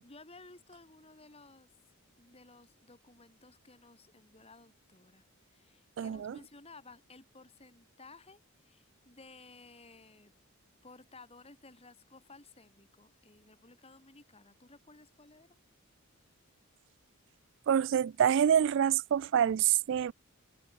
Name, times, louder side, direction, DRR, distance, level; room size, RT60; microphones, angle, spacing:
voice 1, 0.0-1.7 2.2-10.3 10.8-15.6, left 3 dB, 25° left, 3.3 m, -56 dB
voice 2, 6.0-6.4 17.7-20.1, right 9 dB, 55° right, 0.3 m, -26 dB
head